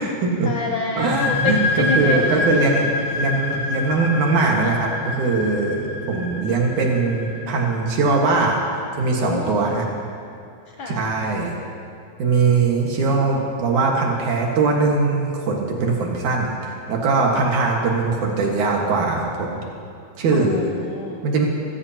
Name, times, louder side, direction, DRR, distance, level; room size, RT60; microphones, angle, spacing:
voice 1, 0.4-2.7 9.2-9.7 10.7-11.1 20.3-21.2, left 3 dB, 85° left, 1 dB, 1.1 m, -28 dB
sound 1, 1.0-8.4, left 3 dB, 35° left, 1.4 m, -26 dB
voice 2, 1.0-2.9 3.2-8.6 9.0-9.9 10.9-11.5 12.2-19.5 20.2-20.6 21.2-21.5, right 4 dB, 80° right, -1 dB, 3.1 m, -21 dB
24.5 x 15.5 x 2.9 m, 2.5 s
omnidirectional pair, 3.4 m